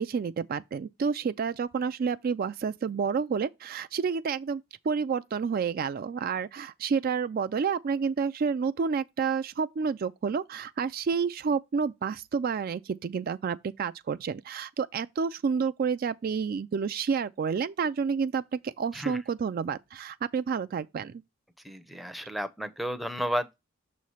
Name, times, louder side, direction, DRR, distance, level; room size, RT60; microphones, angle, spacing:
voice 1, 0.0-21.2, right 6 dB, 45° right, 0.3 m, -29 dB
voice 2, 21.6-23.6, equal, ahead, 0.6 m, -32 dB
6.6 x 3.1 x 5.5 m
head